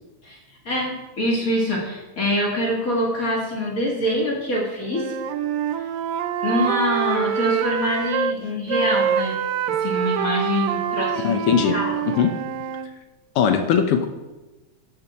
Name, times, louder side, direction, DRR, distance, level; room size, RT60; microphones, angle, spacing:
voice 1, 0.6-5.1 6.4-9.4 9.7-12.0, left 1 dB, 40° left, -2 dB, 1.4 m, -25 dB
Wind instrument woodwind instrument, 4.9-8.4 8.7-12.9, right 8 dB, 80° right, 1.8 m, -25 dB
voice 2, 11.2-11.7 12.2-12.4 13.3-14.1, left 7 dB, 80° left, 7 dB, 1.3 m, -19 dB
10.5 x 7.0 x 4.1 m, 1.1 s
omnidirectional pair, 3.3 m